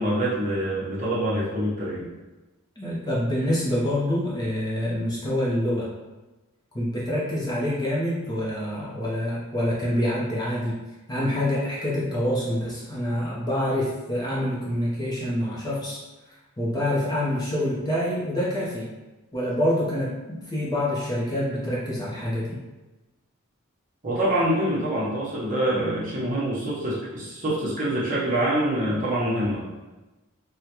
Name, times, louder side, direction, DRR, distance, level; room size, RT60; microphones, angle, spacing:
voice 1, 0.0-2.1 24.0-29.7, right 1 dB, 35° right, -6 dB, 0.9 m, -25 dB
voice 2, 2.8-5.9 6.7-10.8 11.1-16.0 16.6-18.9 19.3-22.6, left 1 dB, 20° left, -6 dB, 0.6 m, -26 dB
3.6 x 2.2 x 2.9 m, 1.1 s
head